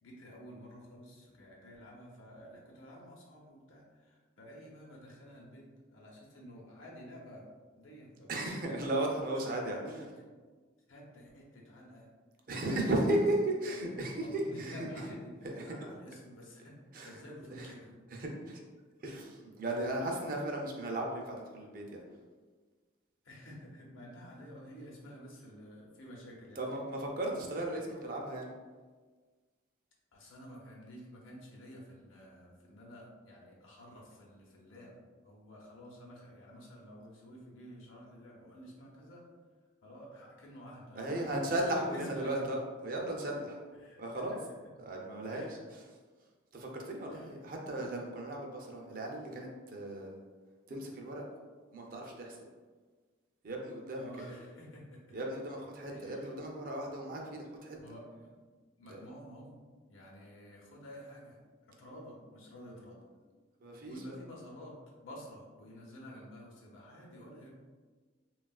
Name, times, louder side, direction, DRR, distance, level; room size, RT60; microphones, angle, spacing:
voice 1, 0.0-8.7 9.3-10.1 10.9-12.1 12.6-13.2 13.8-18.0 20.0-20.2 23.2-26.8 27.7-27.8 30.1-39.3 39.8-42.6 43.8-44.6 45.2-45.6 47.1-47.4 53.9-55.2 55.9-56.4 57.8-58.3 58.8-59.6 59.9-63.0 63.8-67.5, equal, 85° left, -3 dB, 0.8 m, -51 dB
voice 2, 8.3-9.8 12.5-13.2 13.6-14.9 15.5-15.7 16.9-17.1 17.5-17.7 18.1-18.6 19.0-22.0 26.6-28.5 40.9-43.6 44.0-44.4 44.9-45.8 46.5-50.2 50.7-51.2 51.7-52.4 53.4-54.3 55.1-57.8 58.9-59.0 63.6-64.2, right 1 dB, 45° right, 0 dB, 0.4 m, -36 dB
3.4 x 2.3 x 2.3 m, 1.4 s
head